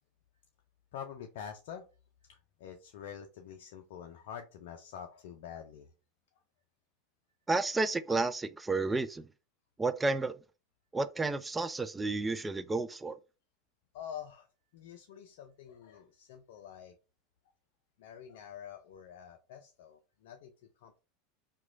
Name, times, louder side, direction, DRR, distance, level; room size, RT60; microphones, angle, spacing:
voice 1, 0.9-1.9 2.3-5.9 13.9-14.5 14.7-17.0 18.0-20.5 20.8-21.0, left 8 dB, 70° left, 0.4 m, -46 dB
voice 2, 7.5-9.3 9.8-10.3 10.9-13.2, right 3 dB, 15° right, 0.3 m, -31 dB
3.0 x 2.2 x 3.7 m
hypercardioid pair, 95°, 0 cm